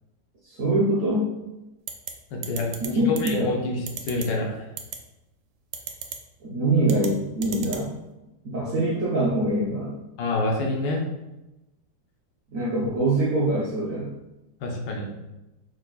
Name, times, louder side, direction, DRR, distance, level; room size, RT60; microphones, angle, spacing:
voice 1, 0.4-1.3 2.8-3.5 6.4-7.9 8.4-10.0 12.5-14.1, right 1 dB, 60° right, -5 dB, 1.0 m, -24 dB
sound 1, 1.9-2.1 2.4-2.9 3.2-3.3 3.9-4.2 4.8-5.0 5.7-6.2 6.8-7.1 7.4-7.8, right 8 dB, 90° right, 1.3 m, -33 dB
voice 2, 2.3-2.7 3.1-3.8 4.1-4.6 10.2-11.0 14.6-15.1, left 2 dB, 90° left, -1 dB, 1.5 m, -27 dB
5.3 x 3.8 x 2.3 m, 0.99 s
omnidirectional pair, 1.9 m